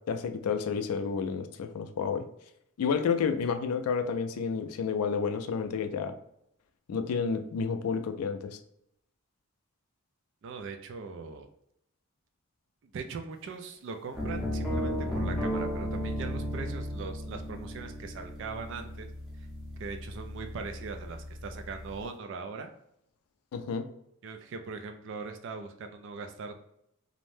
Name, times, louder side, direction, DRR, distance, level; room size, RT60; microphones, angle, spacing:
voice 1, 0.1-2.3 2.8-6.1 6.9-8.6 23.5-23.9, left 6 dB, 85° left, 8 dB, 0.3 m, -30 dB
voice 2, 10.4-11.5 12.8-19.1 19.4-19.5 19.8-22.7 24.2-26.6, right 4 dB, 55° right, 6 dB, 0.3 m, -40 dB
sound 1, 14.1-22.0, equal, ahead, 0.6 m, -35 dB
2.6 x 2.1 x 3.2 m, 0.77 s
head